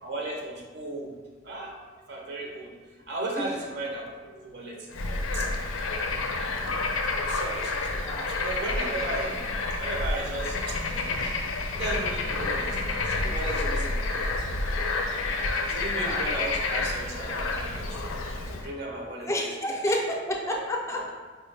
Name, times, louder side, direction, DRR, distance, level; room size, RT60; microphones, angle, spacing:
voice 1, 0.0-1.1 1.4-1.7 2.1-2.7 3.1-5.5 7.2-9.4 9.8-11.4 11.7-14.3 15.6-18.1 18.5-19.8 20.5-20.6 20.9-21.1, right 2 dB, 55° right, -1 dB, 0.5 m, -35 dB
Bird / Frog, 4.9-18.7, left 3 dB, 85° left, 0.4 m, -29 dB
voice 2, 7.9-8.3 15.8-16.3 19.2-21.1, equal, 15° left, -1 dB, 0.4 m, -30 dB
4.2 x 2.1 x 3.2 m, 1.4 s
head